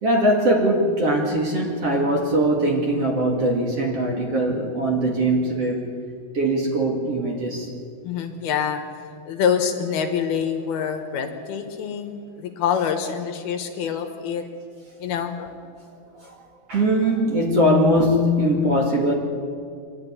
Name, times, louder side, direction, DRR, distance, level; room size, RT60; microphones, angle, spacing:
voice 1, 0.0-5.9 6.3-7.7 16.7-19.1, right 1 dB, 45° right, 0 dB, 2.6 m, -21 dB
voice 2, 8.0-8.8 9.3-14.4 15.0-15.6, left 7 dB, 70° left, 6 dB, 3.0 m, -26 dB
26.0 x 12.0 x 9.7 m, 2.3 s
omnidirectional pair, 4.8 m